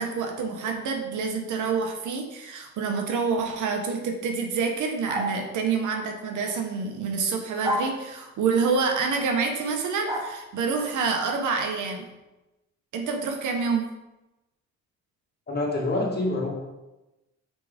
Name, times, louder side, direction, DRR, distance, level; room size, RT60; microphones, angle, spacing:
voice 1, 0.0-12.1 12.9-13.8, right 5 dB, 80° right, 4 dB, 1.2 m, -27 dB
sound 1, 5.1-5.4 7.6-7.9 10.1-10.3, equal, 10° right, 1.3 m, -28 dB
voice 2, 15.5-16.5, left 2 dB, 35° left, -2 dB, 2.2 m, -26 dB
5.9 x 4.7 x 5.1 m, 1.0 s
cardioid pair, 90°, 30 cm